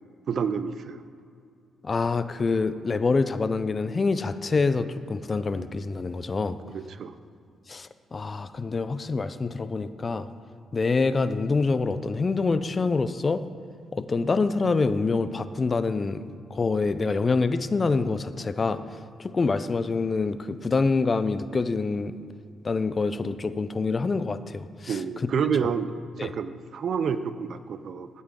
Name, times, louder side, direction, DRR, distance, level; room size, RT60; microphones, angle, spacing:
voice 1, 0.3-1.0 6.7-7.2 24.9-28.1, right 6 dB, 65° right, 12 dB, 0.5 m, -29 dB
voice 2, 1.8-6.6 7.7-10.3 10.7-13.4 13.9-16.2 16.5-18.8 19.2-22.2 22.6-25.0 26.2-26.3, left 4 dB, 40° left, 13 dB, 0.5 m, -26 dB
13.5 x 8.3 x 3.8 m, 2.4 s
supercardioid pair, 65°, 0 cm